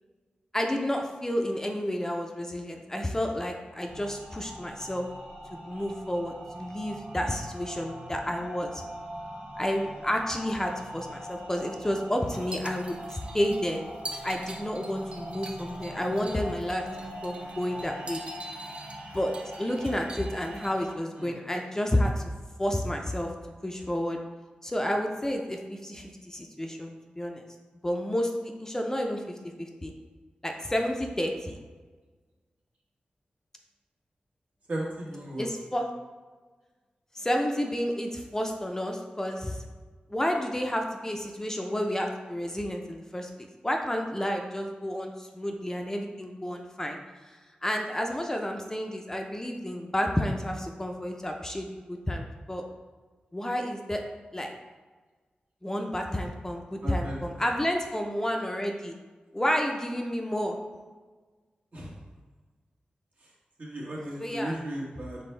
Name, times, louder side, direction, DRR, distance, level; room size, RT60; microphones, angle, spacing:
voice 1, 0.5-5.1 5.6-8.8 9.6-13.8 14.2-16.8 17.2-18.2 19.1-22.2 22.6-23.3 23.6-24.2 24.6-27.4 27.8-29.2 29.6-29.9 30.4-31.5 35.4-35.9 37.1-39.6 40.1-47.0 47.2-52.6 53.3-54.0 54.3-54.5 55.6-59.0 59.3-60.6 64.2-64.5, equal, 15° left, 2 dB, 0.5 m, -30 dB
sound 1, 3.8-20.9, equal, 80° right, 0.8 m, -42 dB
sound 2, 12.2-20.9, right 1 dB, 40° right, 0.5 m, -45 dB
voice 2, 34.7-35.5 56.8-57.7 61.7-61.9 63.2-63.3 63.6-65.2, right 1 dB, 55° right, -4 dB, 1.3 m, -36 dB
4.3 x 3.3 x 3.2 m, 1.4 s
cardioid pair, 55°, 3 cm